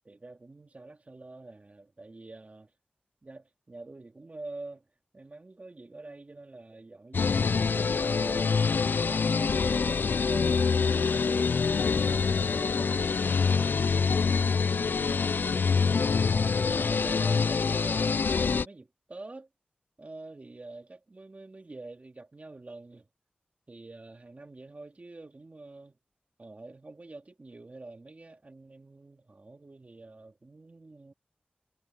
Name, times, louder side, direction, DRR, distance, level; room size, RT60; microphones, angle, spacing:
voice 1, 0.1-2.7 3.2-4.9 5.1-8.5 9.0-10.6 10.9-13.9 15.4-18.3 18.6-19.5 20.0-23.1 23.7-26.0 26.4-31.1, right 2 dB, 45° right, 2.4 m, -46 dB
sound 1, 7.1-18.6, left 5 dB, 90° left, 0.3 m, -25 dB
wide cardioid pair, 60°, 3 cm